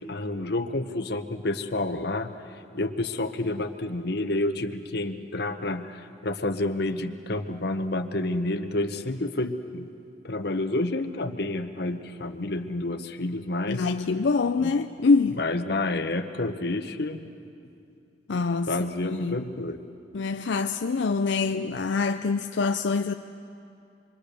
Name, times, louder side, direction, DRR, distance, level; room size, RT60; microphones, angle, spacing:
voice 1, 0.0-2.3 2.7-9.9 10.2-13.8 14.6-14.7 15.4-17.3 18.7-19.8, left 2 dB, 65° left, 1.1 m, -29 dB
voice 2, 13.7-15.4 18.3-18.7 19.0-19.4 20.1-23.1, left 4 dB, 85° left, 0.5 m, -25 dB
26.5 x 23.0 x 6.8 m
head